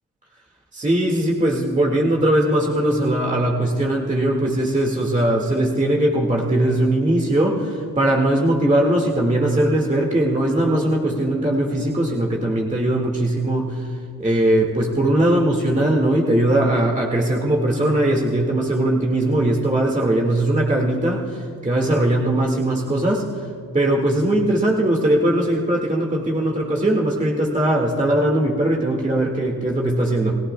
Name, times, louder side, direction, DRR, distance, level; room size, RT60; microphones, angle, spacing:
voice 1, 0.7-13.9 14.2-23.2 23.7-30.4, right 1 dB, 20° right, -1 dB, 1.8 m, -20 dB
30.0 x 17.5 x 2.2 m, 2.5 s
cardioid pair, 70°, 39 cm